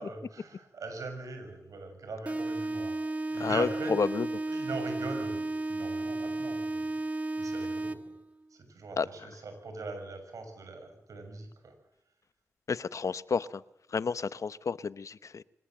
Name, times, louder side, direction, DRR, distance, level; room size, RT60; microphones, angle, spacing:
voice 1, 0.0-3.0 3.3-4.1 4.5-6.9 7.4-8.0 8.5-11.7, right 3 dB, 80° right, 6 dB, 6.8 m, -41 dB
sound 1, 2.2-8.2, right 2 dB, 25° right, 1.5 m, -33 dB
voice 2, 3.4-4.3 9.0-9.1 12.7-13.6 13.9-15.4, left 5 dB, 70° left, 16 dB, 0.9 m, -30 dB
24.5 x 19.0 x 7.8 m, 0.83 s
cardioid pair, 45°, 6 cm